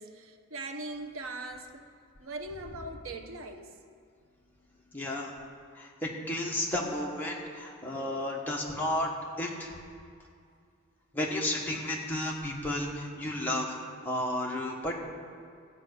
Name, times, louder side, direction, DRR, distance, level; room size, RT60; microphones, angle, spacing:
voice 1, 0.0-1.8 2.2-3.7, right 2 dB, 80° right, 5 dB, 0.9 m, -40 dB
voice 2, 4.9-5.3 5.7-9.1 9.4-9.7 11.1-13.8 14.0-15.0, left 1 dB, 10° left, -3 dB, 1.4 m, -32 dB
14.5 x 5.6 x 8.3 m, 2.3 s
head